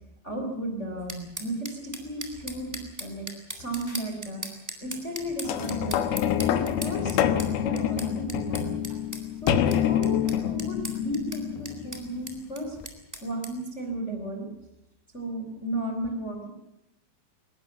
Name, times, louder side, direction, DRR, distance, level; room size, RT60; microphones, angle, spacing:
voice 1, 0.2-3.3 3.5-8.7 9.4-12.8 13.2-14.5 15.1-16.5, right 1 dB, 15° left, 3 dB, 3.3 m, -34 dB
sound 1, 1.1-13.5, right 1 dB, 5° right, 2.5 m, -40 dB
sound 2, 5.4-12.2 12.8-12.9, left 10 dB, 70° left, 2.8 m, -27 dB
23.0 x 20.5 x 7.0 m, 0.91 s
omnidirectional pair, 5.2 m